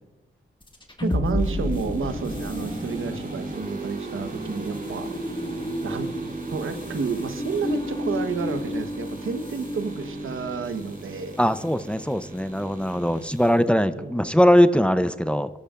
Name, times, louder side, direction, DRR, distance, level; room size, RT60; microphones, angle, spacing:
sound 1, 0.6-11.1, left 1 dB, 25° left, 1.8 m, -32 dB
voice 1, 1.0-5.1 5.8-6.1 6.5-11.4 13.9-14.2, right 5 dB, 85° right, 8 dB, 1.1 m, -30 dB
sound 2, 1.4-13.5, right 3 dB, 45° right, 3.8 m, -37 dB
voice 2, 11.4-15.6, equal, 5° left, 12 dB, 0.6 m, -21 dB
23.5 x 12.5 x 2.5 m, 1.1 s
cardioid pair, 65°, 20 cm